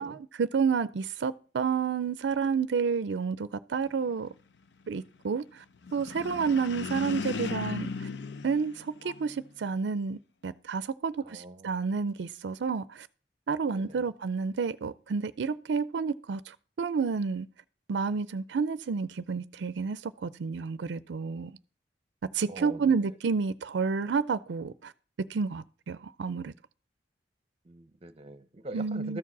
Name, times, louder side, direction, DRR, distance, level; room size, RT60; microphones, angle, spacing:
voice 1, 0.0-4.3 4.9-5.6 5.9-8.1 8.4-13.1 13.5-17.5 17.9-21.6 22.3-24.9 25.2-26.5 28.7-29.2, right 5 dB, 75° right, 0.4 m, -30 dB
sound 1, 5.8-9.4, left 4 dB, 75° left, 0.6 m, -36 dB
voice 2, 11.3-11.7 13.7-14.0 22.5-22.9 27.7-29.2, right 2 dB, 35° right, 0.7 m, -43 dB
13.0 x 4.6 x 7.2 m
head